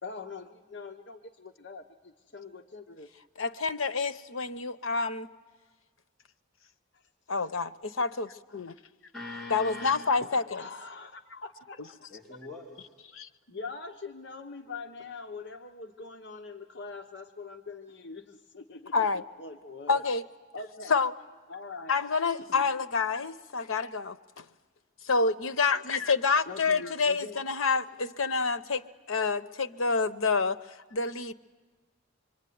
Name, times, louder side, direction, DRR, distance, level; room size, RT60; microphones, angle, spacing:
voice 1, 0.0-3.1 9.0-9.1 10.2-12.1 13.1-18.9 19.4-20.0 20.5-21.0 21.5-22.0 22.5-22.7 26.5-27.4, left 4 dB, 55° left, 5 dB, 1.0 m, -43 dB
voice 2, 3.4-5.3 7.3-8.7 9.5-10.6 13.2-13.3 18.9-19.2 19.9-20.2 20.9-21.1 21.9-24.4 25.0-30.6 30.9-31.3, left 4 dB, 85° left, 11 dB, 0.9 m, -28 dB
voice 3, 9.1-9.9 12.1-12.9, left 2 dB, ahead, -7 dB, 3.7 m, -41 dB
25.0 x 24.5 x 9.4 m, 1.4 s
head